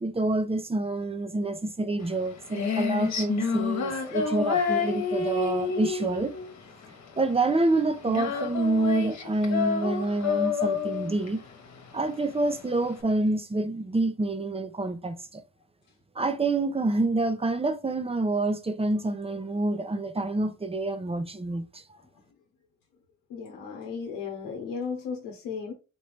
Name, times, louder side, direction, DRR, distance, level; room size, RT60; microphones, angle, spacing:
voice 1, 0.0-6.3 7.2-11.4 11.9-15.4 16.1-21.8, right 2 dB, 20° right, 0.8 m, -27 dB
Female singing, 2.0-13.0, left 6 dB, 55° left, 1.3 m, -29 dB
voice 2, 4.1-4.7 23.3-25.7, left 6 dB, 90° left, 0.9 m, -36 dB
4.4 x 3.0 x 3.4 m
supercardioid pair, 60°, 32 cm